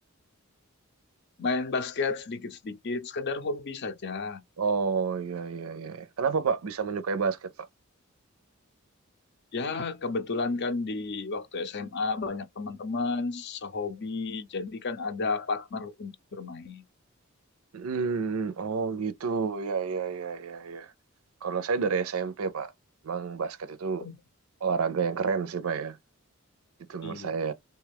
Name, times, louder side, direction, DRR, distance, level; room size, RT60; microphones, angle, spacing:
voice 1, 1.4-4.4 9.5-16.8 24.0-24.1 27.0-27.4, left 3 dB, 50° left, 0.5 m, -32 dB
voice 2, 4.6-7.7 17.7-20.9 21.4-22.7 23.0-24.0 24.6-26.0 26.9-27.5, right 5 dB, 85° right, 0.5 m, -30 dB
3.2 x 2.3 x 3.4 m
head